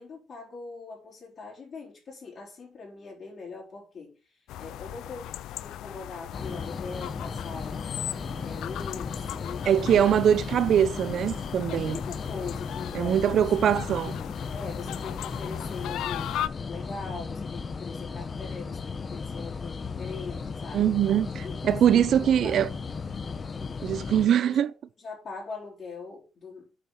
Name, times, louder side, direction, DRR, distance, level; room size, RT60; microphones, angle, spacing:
voice 1, 0.0-7.9 8.4-10.0 11.7-13.3 14.1-14.2 14.5-20.9 21.4-22.5 24.4-24.7 25.0-26.8, left 4 dB, 55° left, 4.6 m, -41 dB
sound 1, 4.5-16.5, left 13 dB, 85° left, 0.4 m, -38 dB
sound 2, 6.3-24.3, left 5 dB, 40° left, 1.0 m, -36 dB
voice 2, 9.7-12.0 12.9-14.1 20.7-22.7 23.8-24.7, right 9 dB, 65° right, 0.6 m, -22 dB
8.6 x 4.8 x 5.7 m
cardioid pair, 90°, 0 cm